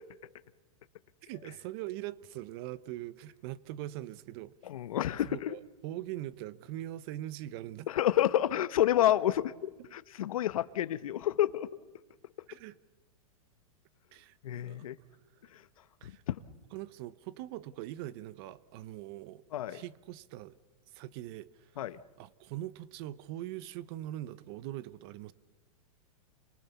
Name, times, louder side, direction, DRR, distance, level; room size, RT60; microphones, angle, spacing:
voice 1, 1.2-4.5 5.3-7.9 12.5-12.7 14.1-14.8 16.0-16.2 16.7-19.4 19.7-20.6 20.9-21.8 22.2-25.3, right 14 dB, 45° right, 0.8 m, -42 dB
voice 2, 4.7-5.5 7.9-11.7 14.4-14.9 16.3-16.4 19.5-19.8 21.8-22.0, left 12 dB, 75° left, 1.2 m, -29 dB
29.5 x 23.0 x 7.0 m
hypercardioid pair, 145°, 18 cm